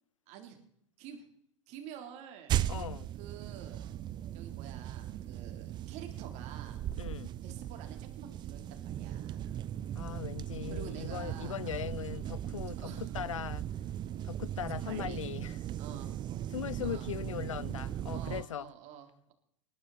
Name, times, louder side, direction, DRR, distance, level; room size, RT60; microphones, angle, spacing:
voice 1, 0.3-0.6 1.0-1.3 1.7-2.9 3.2-3.9 4.3-6.8 7.4-9.5 10.7-11.6 12.0-12.2 12.8-13.1 14.7-15.2 15.8-16.1 16.8-17.1 18.1-19.3, right 8 dB, 45° right, 3.6 m, -48 dB
sound 1, 2.5-18.4, right 11 dB, 30° right, 0.6 m, -38 dB
voice 2, 2.7-3.1 7.0-7.3 9.9-13.7 14.2-15.6 16.5-18.7, left 9 dB, 85° left, 0.4 m, -39 dB
19.5 x 12.0 x 4.2 m
hypercardioid pair, 105°, 16 cm